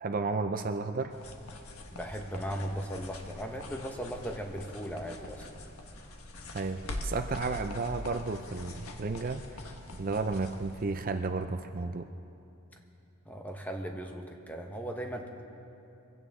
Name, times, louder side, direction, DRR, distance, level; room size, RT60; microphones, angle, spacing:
voice 1, 0.0-1.1 6.5-9.6 10.0-12.1, right 3 dB, 40° right, 8 dB, 0.5 m, -33 dB
sound 1, 1.1-10.8, left 1 dB, 90° left, 1.4 m, -43 dB
voice 2, 1.9-5.5 13.3-15.5, equal, 10° left, 2 dB, 1.1 m, -37 dB
23.5 x 16.0 x 3.6 m, 2.8 s
head